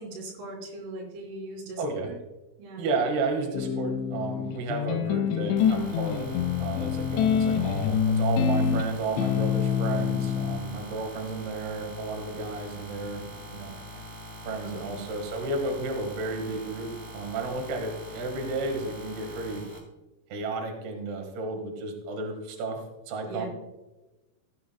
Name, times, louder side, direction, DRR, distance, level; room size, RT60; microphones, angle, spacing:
voice 1, 0.0-2.2 2.6-2.9 14.6-15.1 23.3-23.5, right 2 dB, 90° right, -1 dB, 5.5 m, -40 dB
voice 2, 1.8-2.1 2.8-6.3 6.6-13.2 13.5-13.8 14.4-19.6 20.3-22.8 23.1-23.5, right 3 dB, 65° right, 2 dB, 3.4 m, -32 dB
sound 1, 3.5-10.6, left 7 dB, 80° left, 2.6 m, -26 dB
sound 2, 5.6-19.8, left 1 dB, 30° right, 1.1 m, -43 dB
16.5 x 9.6 x 2.3 m, 1.0 s
omnidirectional pair, 5.4 m